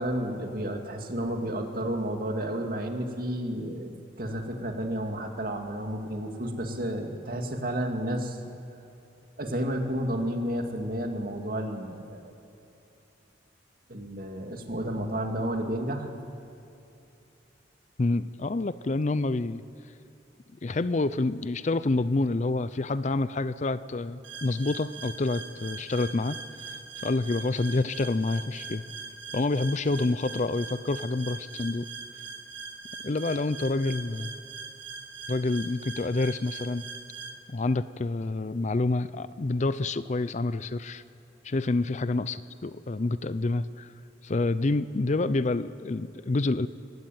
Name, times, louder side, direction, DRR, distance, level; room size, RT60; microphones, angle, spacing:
voice 1, 0.0-3.9 4.2-8.4 9.4-12.3 13.9-16.1, right 1 dB, 50° right, 3 dB, 2.4 m, -31 dB
voice 2, 18.0-19.6 20.6-26.4 27.0-28.8 29.3-31.9 33.0-34.3 35.3-36.8 37.5-41.0 41.4-43.9 44.2-46.7, left 2 dB, 40° left, 15 dB, 0.5 m, -28 dB
sound 1, 24.2-37.3, right 4 dB, 80° right, 2.3 m, -42 dB
22.5 x 16.5 x 9.3 m, 2.8 s
head